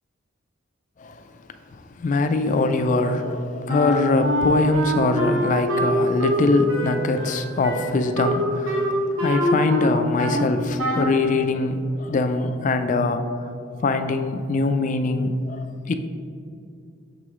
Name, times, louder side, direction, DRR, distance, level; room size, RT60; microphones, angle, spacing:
voice 1, 1.7-13.2 13.8-15.9, left 2 dB, 40° left, 8 dB, 0.3 m, -23 dB
Wind instrument woodwind instrument, 3.7-10.5 10.8-11.2, equal, 80° right, 1.2 m, -24 dB
6.7 x 4.9 x 3.0 m, 2.5 s
head